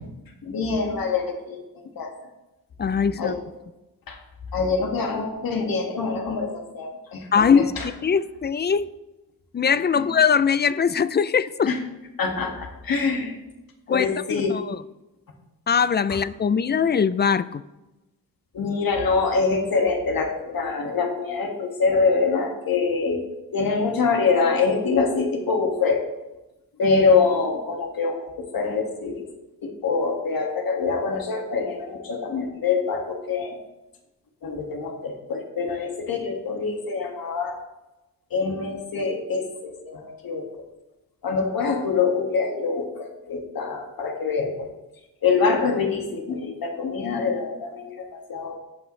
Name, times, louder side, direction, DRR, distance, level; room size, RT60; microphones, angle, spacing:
voice 1, 0.4-1.6 2.0-2.1 3.2-3.4 4.1-4.2 4.5-7.4 7.8-7.9 10.0-10.1 11.7-11.8 12.2-13.3 13.9-14.5 18.5-23.2 23.5-26.1 26.8-29.3 29.6-33.6 34.4-37.6 38.3-40.5 41.2-44.7 45.2-48.6, left 4 dB, 70° left, 1 dB, 2.0 m, -25 dB
voice 2, 2.8-3.3 7.3-7.7 8.0-8.9 9.5-11.7 13.9-14.8 15.7-17.6, left 6 dB, 30° left, 16 dB, 0.4 m, -21 dB
15.5 x 6.1 x 3.2 m, 1.0 s
cardioid pair, 85°, 36 cm